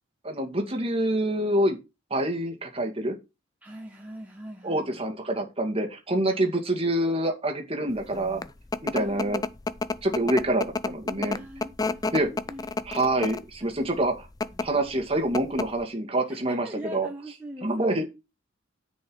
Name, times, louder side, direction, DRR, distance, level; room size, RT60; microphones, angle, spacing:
voice 1, 0.2-1.8 2.1-3.2 4.6-8.4 8.8-9.4 10.0-11.4 12.1-12.3 12.9-14.3 14.6-17.1 17.6-18.1, right 1 dB, 30° right, 2.2 m, -26 dB
voice 2, 3.6-5.0 6.3-6.4 8.9-9.4 11.2-12.8 13.6-13.7 14.5-14.7 16.3-17.9, equal, 10° right, 1.4 m, -42 dB
sound 1, 8.1-13.5 14.3-14.7 15.0-15.1 15.3-15.8, left 3 dB, 20° left, 0.4 m, -29 dB
9.8 x 5.3 x 6.4 m
head